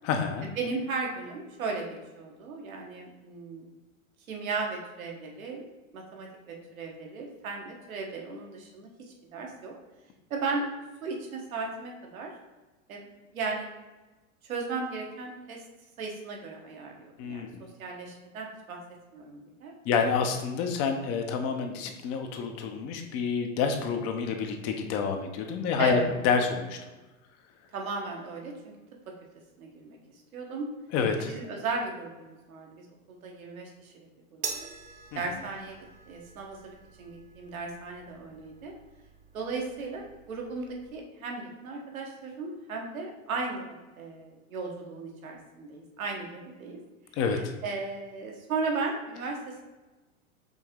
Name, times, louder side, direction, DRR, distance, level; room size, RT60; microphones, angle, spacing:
voice 1, 0.0-0.5 17.2-17.6 19.8-26.8 30.9-31.3 35.1-35.2 47.1-47.5, left 5 dB, 35° left, 5 dB, 0.7 m, -28 dB
voice 2, 0.6-3.6 4.3-5.6 5.9-8.9 9.3-9.7 10.3-10.7 11.0-12.3 12.9-13.1 13.3-13.7 14.4-15.6 16.0-18.8 19.1-19.7 25.8-26.0 27.7-28.7 29.6-30.0 30.3-30.7 31.2-33.9 34.3-34.4 35.1-35.8 36.1-38.7 39.3-46.8 47.3-49.6, right 4 dB, 85° right, 0 dB, 1.2 m, -36 dB
sound 1, 34.4-41.0, right 6 dB, 20° right, 0.4 m, -44 dB
5.2 x 2.8 x 3.5 m, 1.2 s
hypercardioid pair, 115°, 41 cm